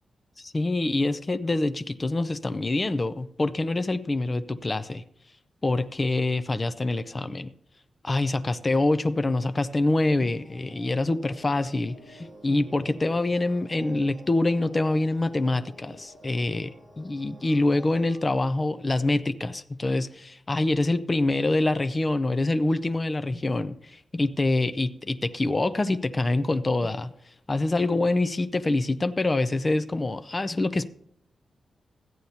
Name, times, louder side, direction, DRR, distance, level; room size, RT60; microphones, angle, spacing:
voice 1, 0.4-5.0 5.6-7.5 8.0-27.1 27.5-30.9, left 2 dB, 20° left, 12 dB, 0.4 m, -25 dB
sound 1, 10.2-18.2, right 1 dB, 5° right, 1.9 m, -49 dB
14.5 x 9.2 x 2.8 m, 0.70 s
wide cardioid pair, 170°, 0 cm